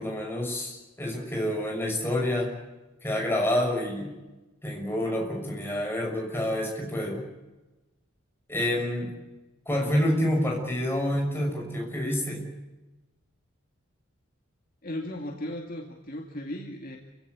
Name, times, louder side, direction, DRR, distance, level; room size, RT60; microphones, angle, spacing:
voice 1, 0.0-2.5 3.0-4.1 4.6-7.2 8.5-9.1 9.7-12.5, left 1 dB, 10° left, 0 dB, 6.3 m, -28 dB
voice 2, 14.8-17.0, left 1 dB, 45° left, 2 dB, 2.3 m, -36 dB
28.5 x 16.5 x 8.3 m, 1.1 s
head